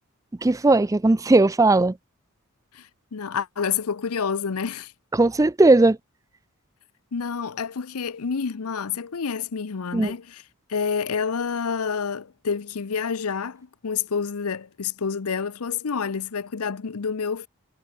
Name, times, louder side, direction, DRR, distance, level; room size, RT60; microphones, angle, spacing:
voice 1, 0.4-2.0 5.1-6.0 9.9-10.1, right 2 dB, 15° right, 0.4 m, -17 dB
voice 2, 2.7-4.9 7.1-10.4 10.7-17.5, left 6 dB, 80° left, 0.7 m, -28 dB
head